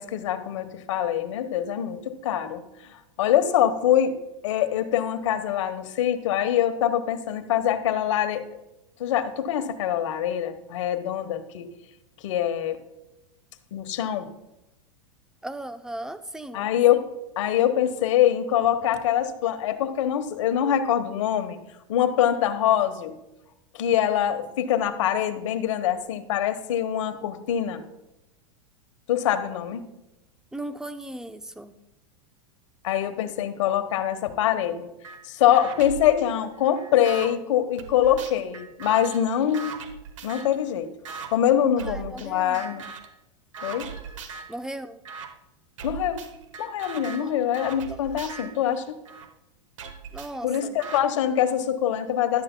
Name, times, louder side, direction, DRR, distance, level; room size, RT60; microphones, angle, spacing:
voice 1, 0.0-2.6 3.2-4.2 4.4-8.4 9.0-11.7 12.2-12.8 13.7-14.3 16.5-17.1 17.4-21.6 21.9-23.2 23.7-27.8 29.1-29.8 32.8-34.9 35.2-39.8 40.2-40.9 41.3-42.8 43.6-43.9 45.8-46.3 46.6-49.0 50.4-52.4, left 10 dB, 75° left, 8 dB, 1.2 m, -24 dB
voice 2, 15.4-16.7 30.5-31.7 41.8-42.7 44.5-45.0 47.1-47.4 47.9-48.0 50.1-50.8, right 1 dB, 5° right, 10 dB, 0.6 m, -37 dB
sound 1, 35.0-35.2 35.5-37.3 37.8-40.6 41.0-41.3 41.8-42.3 42.5-43.1 43.5-44.5 45.0-45.3 45.8-49.3 49.8-51.0, right 5 dB, 85° right, 1.2 m, -39 dB
16.0 x 11.5 x 2.2 m, 0.93 s
hypercardioid pair, 120°, 16 cm